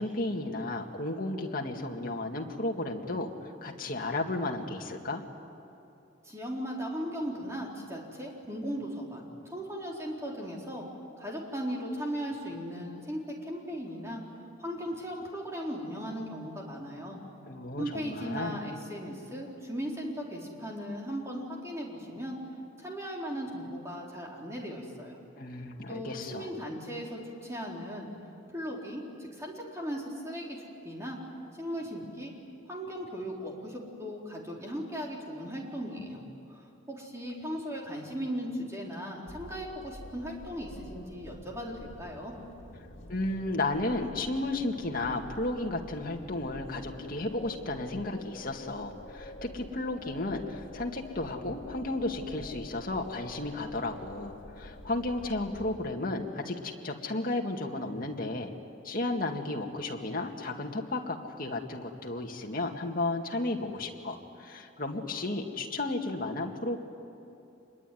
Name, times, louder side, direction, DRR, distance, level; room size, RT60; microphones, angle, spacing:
voice 1, 0.0-3.3 3.6-5.2 17.5-18.6 25.4-26.5 43.1-58.5 58.8-66.8, left 2 dB, 45° left, 1 dB, 2.2 m, -33 dB
voice 2, 6.2-10.8 11.2-14.2 14.6-17.2 17.8-22.4 22.8-25.2 25.9-28.1 28.5-30.6 30.8-31.2 31.6-32.3 32.7-36.2 36.5-42.3, equal, 15° right, -2 dB, 4.2 m, -37 dB
sound 1, 39.3-55.8, left 1 dB, 75° left, 2.3 m, -47 dB
26.5 x 22.0 x 9.5 m, 2.8 s
head